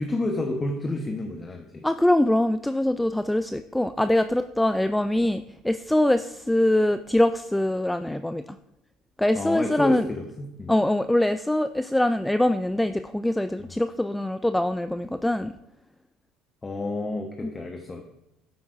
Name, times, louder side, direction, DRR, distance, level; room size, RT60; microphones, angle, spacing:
voice 1, 0.0-1.9 9.4-10.7 13.6-13.7 16.6-18.0, left 2 dB, 25° left, 3 dB, 0.9 m, -30 dB
voice 2, 1.8-8.4 9.2-10.1 10.7-15.5, left 1 dB, 5° left, 10 dB, 0.3 m, -23 dB
12.5 x 5.3 x 2.4 m, 0.89 s
figure-of-eight pair, 60°, 0 cm